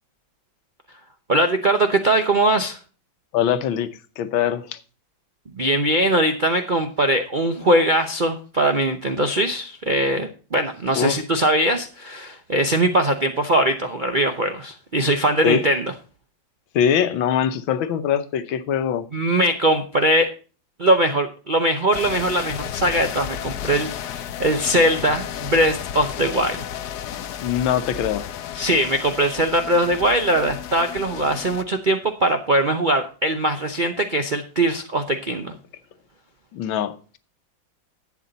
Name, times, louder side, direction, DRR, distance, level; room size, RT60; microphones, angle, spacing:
voice 1, 1.3-2.8 5.5-15.9 19.1-20.3 20.8-26.7 28.5-35.5, right 1 dB, 55° right, 0.5 m, -21 dB
voice 2, 3.3-3.9 4.2-4.8 10.9-11.2 15.4-15.6 16.7-19.1 27.4-28.2 36.5-37.2, left 9 dB, 90° left, 1.6 m, -22 dB
sound 1, 21.9-31.6, left 10 dB, 70° left, 1.1 m, -33 dB
11.5 x 8.5 x 4.0 m
omnidirectional pair, 2.1 m